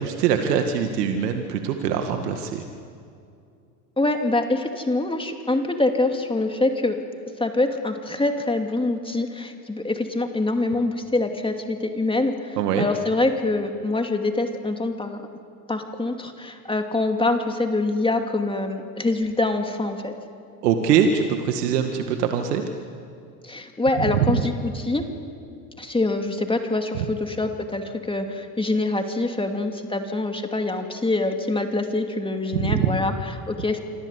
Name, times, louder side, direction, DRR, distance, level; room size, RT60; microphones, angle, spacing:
voice 1, 0.0-2.6 12.6-12.9 20.6-22.6 32.6-32.9, right 7 dB, 75° right, 5 dB, 2.1 m, -23 dB
voice 2, 4.0-7.0 7.4-15.2 15.7-20.1 23.4-25.0 25.8-33.8, left 2 dB, 10° left, 4 dB, 2.6 m, -25 dB
27.0 x 24.5 x 8.3 m, 2.4 s
hypercardioid pair, 85°, 47 cm